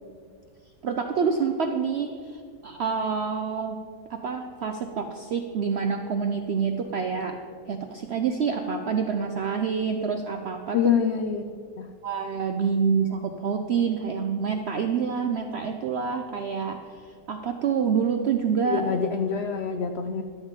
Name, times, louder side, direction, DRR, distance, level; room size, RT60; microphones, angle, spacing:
voice 1, 0.8-3.8 4.1-7.4 7.7-10.8 12.0-16.8 17.0-18.9, right 6 dB, 75° right, 5 dB, 0.6 m, -27 dB
voice 2, 10.7-11.4 11.8-11.9 18.6-20.2, left 7 dB, 90° left, 5 dB, 0.5 m, -25 dB
12.0 x 7.2 x 5.0 m, 2.1 s
omnidirectional pair, 1.8 m